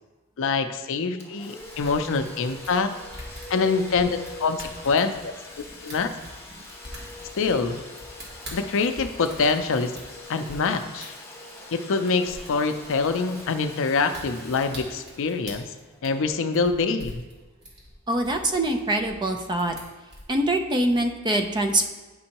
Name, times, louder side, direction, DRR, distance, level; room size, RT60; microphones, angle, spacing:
voice 1, 0.4-2.9 3.5-5.3 5.8-6.1 7.4-7.8 8.5-9.9 10.3-11.1 11.7-15.7 16.0-17.2, left 4 dB, 60° left, 8 dB, 0.5 m, -25 dB
Domestic sounds home sounds, 1.2-16.7, left 2 dB, 10° left, 0.9 m, -44 dB
sound 1, 1.6-10.6 11.0-11.1 11.5-11.7 12.0-20.3, equal, 50° right, 1.9 m, -44 dB
voice 2, 18.1-19.8 20.3-21.9, right 1 dB, 20° right, 5 dB, 0.5 m, -24 dB
9.4 x 5.3 x 2.9 m, 1.2 s
head